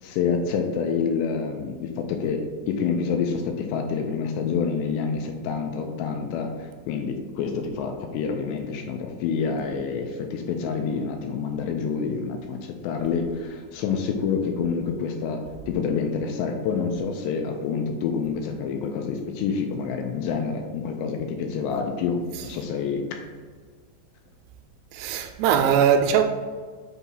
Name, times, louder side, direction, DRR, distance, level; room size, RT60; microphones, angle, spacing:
voice 1, 0.0-2.4 2.7-23.2, left 6 dB, 85° left, 2.7 m, -27 dB
voice 2, 24.9-26.2, right 8 dB, 85° right, 2.7 m, -20 dB
7.0 x 2.8 x 5.5 m
omnidirectional pair, 5.2 m